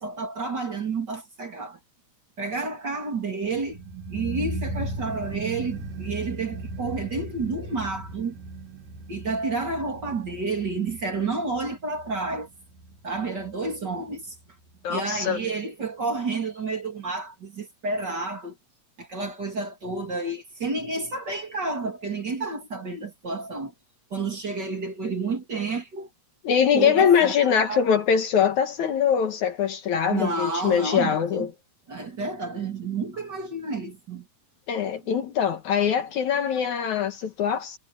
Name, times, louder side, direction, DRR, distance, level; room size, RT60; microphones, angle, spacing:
voice 1, 0.0-1.8 2.4-3.8 4.1-8.3 9.1-12.5 13.0-14.3 14.9-18.6 19.0-23.7 24.1-26.1 26.7-27.9 30.1-31.5 31.9-34.3, right 3 dB, 30° right, 3.4 m, -30 dB
sound 1, 3.4-14.4 14.7-14.8, right 2 dB, 70° right, 4.3 m, -37 dB
voice 2, 14.8-15.4 26.4-31.5 34.7-37.8, left 8 dB, 65° left, 2.7 m, -23 dB
omnidirectional pair, 4.0 m